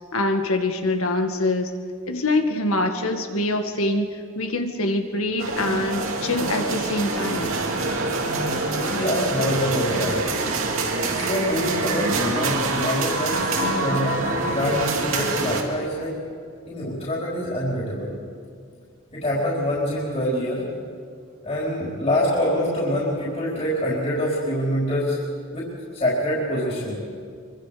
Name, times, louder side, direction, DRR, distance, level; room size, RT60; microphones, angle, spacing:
voice 1, 0.1-1.7 2.1-7.5, left 2 dB, 80° left, 5 dB, 1.9 m, -24 dB
sound 1, 5.4-15.6, right 3 dB, 70° right, 2.5 m, -25 dB
voice 2, 8.7-10.2 11.0-16.1 16.6-18.2 19.1-20.6 21.4-25.2 25.5-27.0, equal, 30° left, -6 dB, 4.5 m, -25 dB
25.0 x 24.0 x 5.2 m, 2.2 s
head